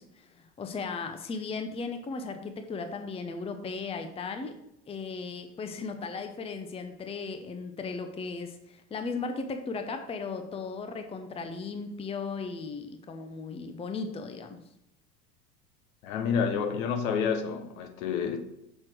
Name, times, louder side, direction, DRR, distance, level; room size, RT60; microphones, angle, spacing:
voice 1, 0.0-4.6 4.9-14.6, left 4 dB, 10° left, 0.7 m, -36 dB
voice 2, 16.0-18.4, left 6 dB, 60° left, 1.2 m, -29 dB
6.5 x 6.0 x 4.5 m
figure-of-eight pair, 80°, 47 cm